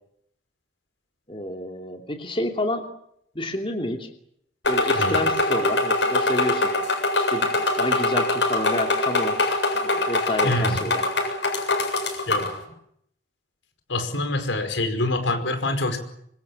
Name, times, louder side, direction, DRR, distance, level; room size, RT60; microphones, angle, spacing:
voice 1, 1.3-2.9 3.3-4.1 4.7-6.7 7.2-7.5 7.8-9.4 10.1-11.0, left 1 dB, 30° left, 3 dB, 2.8 m, -29 dB
sound 1, 4.6-12.5, left 2 dB, 75° left, 7.7 m, -23 dB
voice 2, 10.4-10.9 12.3-12.6 13.9-16.0, left 2 dB, 90° left, 7 dB, 5.2 m, -25 dB
26.0 x 24.5 x 7.3 m, 0.71 s
head